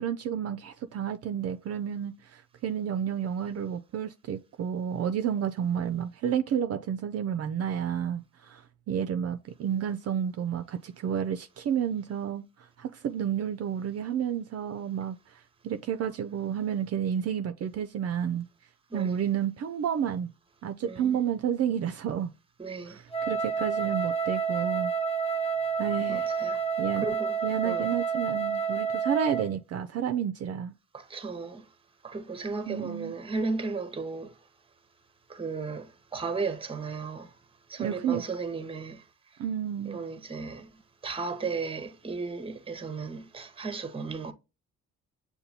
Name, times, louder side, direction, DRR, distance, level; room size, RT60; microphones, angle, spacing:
voice 1, 0.0-8.6 8.9-18.5 18.9-20.3 20.6-22.3 22.9-24.9 25.8-26.3 26.8-27.1 27.4-30.7 32.7-33.2 37.8-38.2 39.4-40.0, right 8 dB, 55° right, 0.4 m, -31 dB
voice 2, 20.8-21.2 22.6-23.0 26.1-26.6 27.0-27.3 27.6-27.9 30.9-31.6 32.0-34.3 35.3-37.3 37.7-39.0 39.8-40.7 41.0-44.3, right 4 dB, 20° right, 0.7 m, -35 dB
Wind instrument woodwind instrument, 23.1-29.5, right 6 dB, 20° left, 0.6 m, -29 dB
6.7 x 2.3 x 2.8 m
cardioid pair, 90°, 30 cm